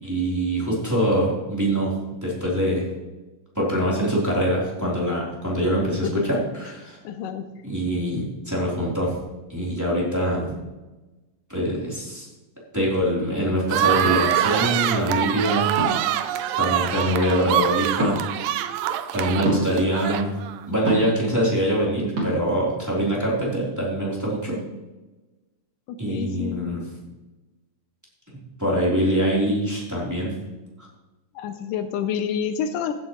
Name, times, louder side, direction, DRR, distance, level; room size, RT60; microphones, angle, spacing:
voice 1, 0.0-1.9 2.2-2.9 3.5-7.0 7.6-9.2 9.5-10.5 11.5-12.3 12.7-15.7 16.6-18.2 19.1-20.4 20.7-24.6 26.0-26.8 28.6-30.3, equal, 5° right, -6 dB, 3.2 m, -24 dB
voice 2, 6.0-6.4 7.0-7.6 25.9-26.7 31.4-32.9, left 7 dB, 80° left, 9 dB, 2.2 m, -29 dB
sound 1, 13.7-20.6, right 11 dB, 85° right, 2.3 m, -24 dB
sound 2, 14.0-14.2 15.8-16.1 18.0-18.2 19.4-19.6 20.9-21.2 22.2-22.3, equal, 30° right, 3.2 m, -25 dB
15.5 x 9.4 x 3.2 m, 1.1 s
omnidirectional pair, 3.8 m